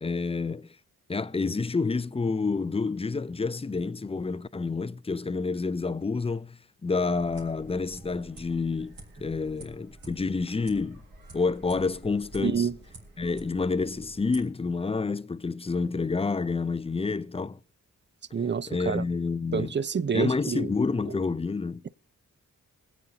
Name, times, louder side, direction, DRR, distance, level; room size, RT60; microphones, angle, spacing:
voice 1, 0.0-0.8 1.1-11.0 11.3-12.7 13.2-17.6 18.7-19.7 20.1-21.8, left 4 dB, 15° left, 0.5 m, -29 dB
sound 1, 7.0-14.4, right 2 dB, 90° right, 3.3 m, -48 dB
voice 2, 12.4-12.8 18.3-19.0 19.5-20.7, right 6 dB, 35° right, 0.6 m, -28 dB
21.5 x 8.2 x 2.9 m
cardioid pair, 55°, 34 cm